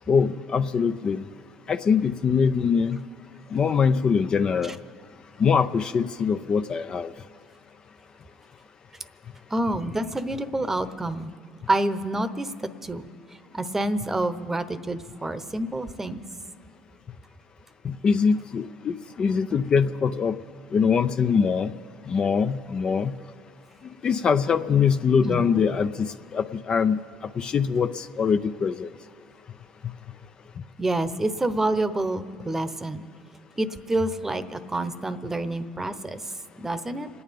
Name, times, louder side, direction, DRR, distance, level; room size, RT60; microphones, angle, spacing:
voice 1, 0.1-1.2 1.7-3.0 3.5-4.8 5.4-7.1 17.8-20.4 20.7-21.7 22.1-23.1 24.0-27.0 27.4-28.9, left 6 dB, 40° left, 10 dB, 0.5 m, -23 dB
voice 2, 9.5-11.3 11.7-12.5 12.8-13.1 13.5-16.2 25.3-25.4 30.8-33.0 33.6-36.2 36.6-37.1, right 2 dB, 15° right, 12 dB, 0.9 m, -27 dB
27.0 x 9.5 x 5.2 m, 2.1 s
supercardioid pair, 90°, 2 cm